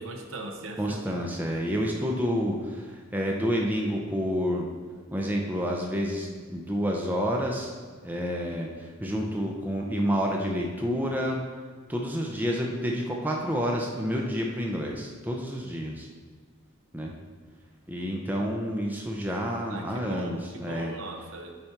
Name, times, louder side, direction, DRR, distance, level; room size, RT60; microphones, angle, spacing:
voice 1, 0.0-1.2 19.7-21.5, right 2 dB, 65° right, 3 dB, 0.9 m, -40 dB
voice 2, 0.8-4.7 5.1-7.7 8.0-11.4 11.9-16.1 16.9-17.1 17.9-20.9, equal, 10° right, -1 dB, 0.6 m, -29 dB
8.8 x 4.3 x 4.5 m, 1.5 s
head